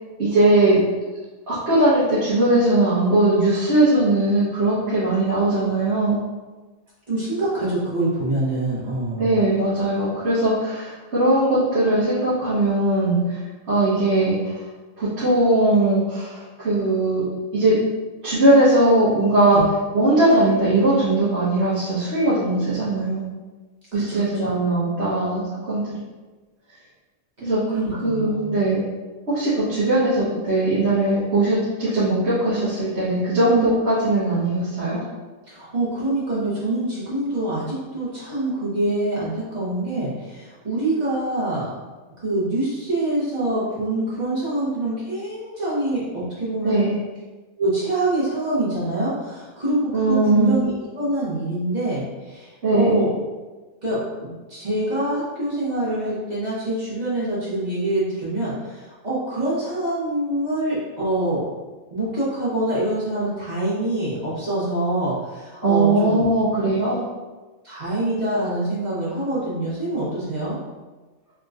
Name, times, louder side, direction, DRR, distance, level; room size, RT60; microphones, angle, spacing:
voice 1, 0.2-0.8 1.5-6.2 9.2-13.4 13.7-14.6 15.0-17.2 17.5-17.7 18.2-19.6 19.9-23.2 23.9-25.9 27.4-27.6 28.0-28.8 29.3-35.0 46.6-46.9 49.9-50.6 52.6-53.0 65.6-67.0, right 2 dB, 55° right, -12 dB, 1.2 m, -19 dB
voice 2, 7.1-9.3 19.5-19.7 23.9-24.5 27.4-28.5 33.4-33.7 35.5-41.7 42.2-46.8 47.6-53.1 53.8-61.4 61.9-66.3 67.6-70.6, right 1 dB, 35° right, -9 dB, 1.3 m, -25 dB
3.5 x 2.9 x 2.4 m, 1.3 s
omnidirectional pair, 1.4 m